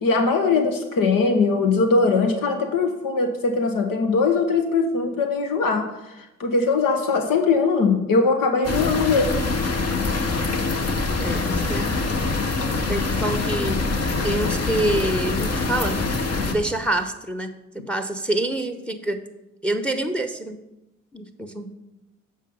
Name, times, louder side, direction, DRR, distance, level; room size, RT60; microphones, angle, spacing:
voice 1, 0.0-9.3, left 4 dB, 75° left, 5 dB, 0.9 m, -21 dB
sound 1, 8.6-16.5, left 3 dB, 45° left, 1.2 m, -24 dB
voice 2, 11.2-11.9 12.9-13.8 14.2-16.0 16.5-17.5 17.7-19.2 19.6-20.6 21.1-21.7, right 1 dB, 5° left, 9 dB, 0.8 m, -26 dB
7.4 x 5.2 x 5.3 m, 0.95 s
supercardioid pair, 40°, 34 cm